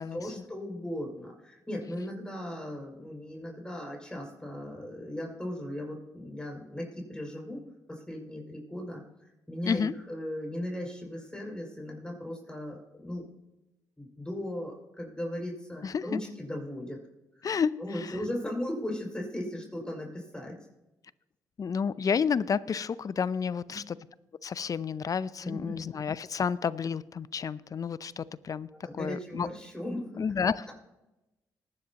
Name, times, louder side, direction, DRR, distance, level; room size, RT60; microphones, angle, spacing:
voice 1, 0.0-7.6 7.9-9.0 9.5-13.2 14.0-17.0 17.3-17.5 17.8-20.6 23.7-23.8 25.4-25.8 28.7-30.2, left 1 dB, 10° left, -1 dB, 5.7 m, -37 dB
voice 2, 15.8-16.2 17.4-18.2 21.6-24.0 24.4-28.7 28.9-29.5 30.2-30.7, left 6 dB, 45° left, 18 dB, 0.6 m, -30 dB
20.0 x 11.0 x 3.0 m, 0.99 s
supercardioid pair, 55°, 8 cm